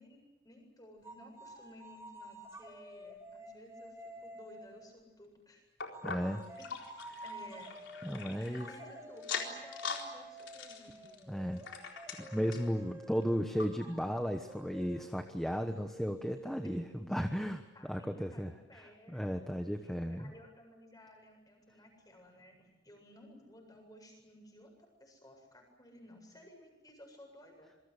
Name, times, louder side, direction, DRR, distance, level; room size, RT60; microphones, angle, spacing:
voice 1, 0.0-5.6 6.6-6.7 7.2-7.7 8.4-11.2 16.6-17.1 17.7-19.3 19.8-27.7, left 1 dB, 20° left, 3 dB, 7.7 m, -56 dB
sound 1, 1.0-5.0 5.9-17.2, right 1 dB, 15° right, 5.8 m, -50 dB
sound 2, 5.8-8.8 9.2-10.1 10.4-12.7 13.2-13.3 13.6-13.7 14.3-14.4, left 5 dB, 75° left, 4.2 m, -42 dB
voice 2, 6.0-6.4 7.1-7.2 8.0-8.7 11.3-11.6 12.2-17.6 17.9-20.3, equal, ahead, 6 dB, 1.1 m, -35 dB
27.0 x 23.5 x 8.2 m, 0.99 s
head